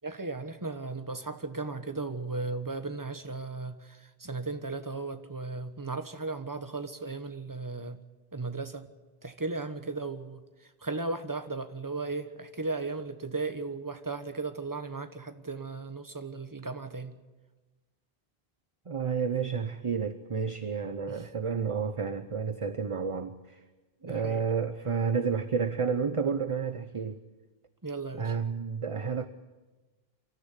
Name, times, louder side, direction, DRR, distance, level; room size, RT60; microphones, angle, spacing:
voice 1, 0.0-8.0 8.3-8.8 9.2-10.4 10.8-17.1 21.1-21.2 24.0-24.4 27.8-28.3, right 3 dB, 20° right, 1.2 m, -36 dB
voice 2, 18.9-23.6 24.0-27.2 28.1-29.3, right 6 dB, 35° right, 0.8 m, -30 dB
25.0 x 13.5 x 9.8 m
omnidirectional pair, 1.0 m